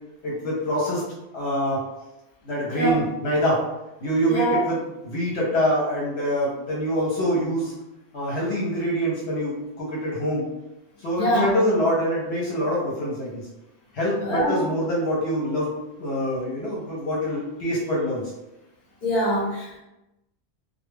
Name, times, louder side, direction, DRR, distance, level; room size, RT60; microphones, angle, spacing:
voice 1, 0.2-1.0 1.3-1.9 2.4-3.6 4.0-7.7 8.1-10.5 11.0-13.5 13.9-15.7 16.0-18.3, equal, 70° left, -4 dB, 0.9 m, -25 dB
voice 2, 2.7-3.0 4.3-4.6 11.1-11.5 14.2-14.6 19.0-19.8, equal, 40° left, -5 dB, 0.9 m, -24 dB
2.2 x 2.1 x 3.1 m, 0.95 s
omnidirectional pair, 1.1 m